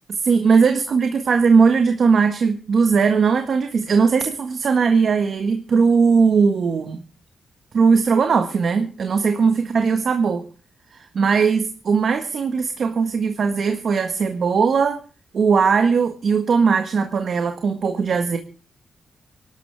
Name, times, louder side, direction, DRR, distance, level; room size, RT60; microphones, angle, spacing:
voice 1, 0.1-7.0 7.7-10.4 10.9-15.0 15.3-18.4, right 5 dB, 55° right, 6 dB, 1.6 m, -19 dB
25.0 x 12.5 x 3.5 m, 0.36 s
wide cardioid pair, 125°, 0 cm